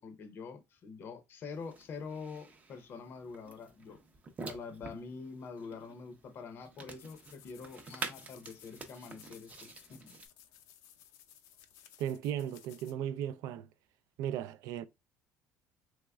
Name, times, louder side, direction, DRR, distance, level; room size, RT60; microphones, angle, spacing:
voice 1, 0.0-4.0 4.5-10.1, left 5 dB, 45° left, 0.6 m, -45 dB
sound 1, 1.5-10.3, right 3 dB, 25° right, 0.5 m, -48 dB
sound 2, 7.0-12.9, left 10 dB, 85° left, 0.4 m, -58 dB
voice 2, 12.0-13.7 14.2-14.8, right 10 dB, 75° right, 0.3 m, -36 dB
3.5 x 3.1 x 2.2 m
cardioid pair, 140°, 6 cm